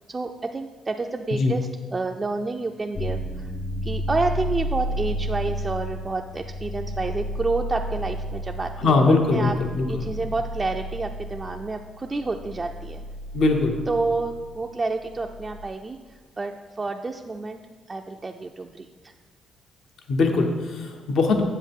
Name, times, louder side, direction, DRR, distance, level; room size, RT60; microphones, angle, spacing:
voice 1, 0.1-3.5 3.8-9.5 9.9-13.0 13.9-16.0 16.4-17.6 17.9-19.1, right 3 dB, 25° right, 3 dB, 0.4 m, -29 dB
sound 1, 3.0-15.7, equal, 35° left, 0.9 m, -32 dB
voice 2, 8.8-9.9 13.3-13.8 20.1-21.5, left 3 dB, 70° left, 4 dB, 0.9 m, -21 dB
8.4 x 7.2 x 3.6 m, 1.4 s
cardioid pair, 90°, 0 cm